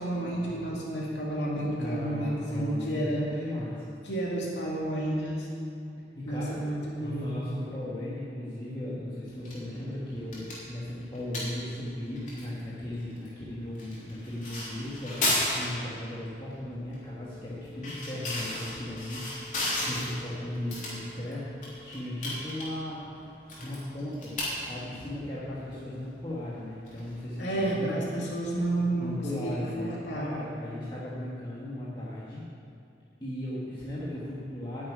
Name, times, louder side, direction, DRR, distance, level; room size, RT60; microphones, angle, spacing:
voice 1, 0.0-3.2 4.0-5.5 6.3-7.3 27.4-30.4, right 1 dB, 85° left, -4 dB, 2.3 m, -31 dB
voice 2, 1.8-3.8 6.2-6.6 7.0-21.6 21.8-28.5 28.9-32.4 33.2-34.9, left 1 dB, 25° left, -8 dB, 1.7 m, -37 dB
sound 1, 9.3-27.6, left 1 dB, 45° left, 3.5 m, -37 dB
sound 2, 17.0-22.0, left 3 dB, 5° right, 1.0 m, -51 dB
9.9 x 7.6 x 9.3 m, 2.5 s
head